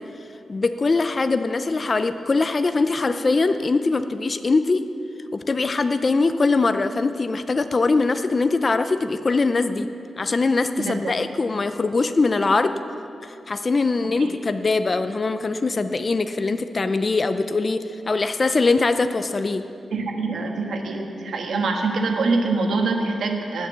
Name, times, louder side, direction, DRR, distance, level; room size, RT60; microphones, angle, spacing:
voice 1, 0.5-4.9 5.3-9.9 10.2-12.7 13.2-19.6, left 3 dB, 35° left, 9 dB, 0.5 m, -22 dB
voice 2, 10.8-11.1 14.2-14.3 19.9-23.7, right 3 dB, 80° right, 2 dB, 1.6 m, -24 dB
18.5 x 7.3 x 7.4 m, 2.6 s
wide cardioid pair, 100°, 0 cm